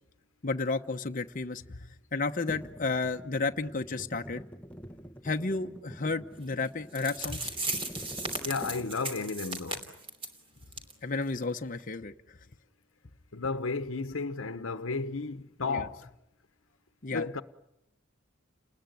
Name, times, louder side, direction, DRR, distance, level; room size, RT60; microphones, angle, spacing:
voice 1, 0.4-4.4 5.2-7.5 11.0-12.4 15.7-15.9 17.0-17.3, left 3 dB, 45° left, 0.9 m, -32 dB
sound 1, 2.5-9.2, equal, 5° left, 1.0 m, -47 dB
sound 2, 6.6-6.7 6.9-10.4 10.7-10.9 11.2-11.3 11.8-11.9, right 2 dB, 30° right, 3.0 m, -36 dB
voice 2, 8.4-9.8 13.3-16.1 17.1-17.4, left 4 dB, 85° left, 1.1 m, -33 dB
30.0 x 20.0 x 9.3 m
head